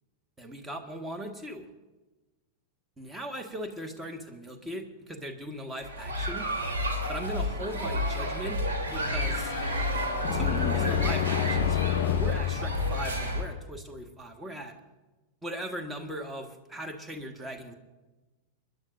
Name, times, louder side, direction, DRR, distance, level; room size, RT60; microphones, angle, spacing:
voice 1, 0.4-1.7 3.0-6.5 7.1-8.6 8.9-9.5 10.3-14.8 15.4-17.7, right 1 dB, 10° right, 6 dB, 1.6 m, -39 dB
sound 1, 5.8-13.4, left 1 dB, 65° right, 3.3 m, -30 dB
sound 2, 8.9-13.6, left 15 dB, 50° left, 0.5 m, -30 dB
29.5 x 11.0 x 2.6 m, 1.2 s
figure-of-eight pair, 90°, 0 cm